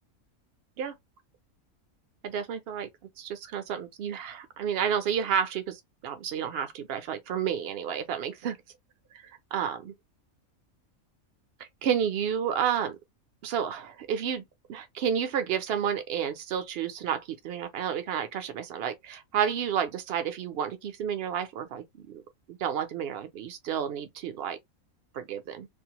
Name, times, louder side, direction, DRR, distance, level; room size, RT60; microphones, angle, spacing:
voice 1, 2.2-2.9 3.2-8.6 9.5-9.9 11.6-13.0 13.4-14.4 14.7-22.2 22.5-24.6 25.1-25.7, right 8 dB, 60° right, 0.6 m, -31 dB
2.6 x 2.0 x 2.8 m
omnidirectional pair, 1.5 m